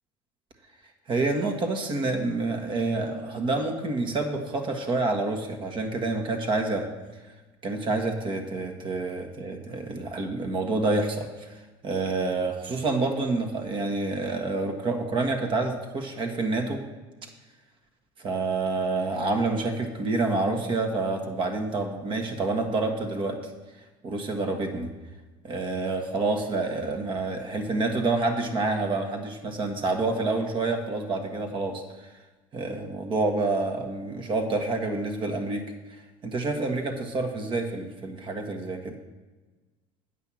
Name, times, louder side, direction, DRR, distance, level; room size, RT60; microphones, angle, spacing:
voice 1, 1.1-6.9 7.6-11.5 11.8-16.8 18.2-23.4 24.0-24.9 25.4-32.1 32.5-39.0, right 3 dB, 40° right, 4 dB, 1.6 m, -28 dB
8.8 x 5.6 x 7.5 m, 1.2 s
supercardioid pair, 110°, 13 cm